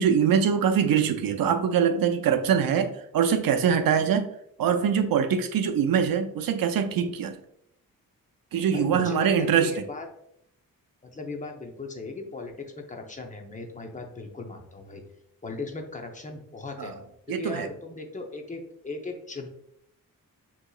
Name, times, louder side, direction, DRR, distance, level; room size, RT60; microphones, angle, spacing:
voice 1, 0.0-4.3 4.6-7.4 8.5-9.7 16.8-16.9 17.3-17.7, right 7 dB, 75° right, 7 dB, 0.6 m, -23 dB
voice 2, 8.7-10.1 11.0-15.0 15.4-16.9 17.4-19.5, left 3 dB, 20° left, 3 dB, 0.7 m, -37 dB
6.6 x 3.0 x 2.3 m, 0.74 s
wide cardioid pair, 130°, 35 cm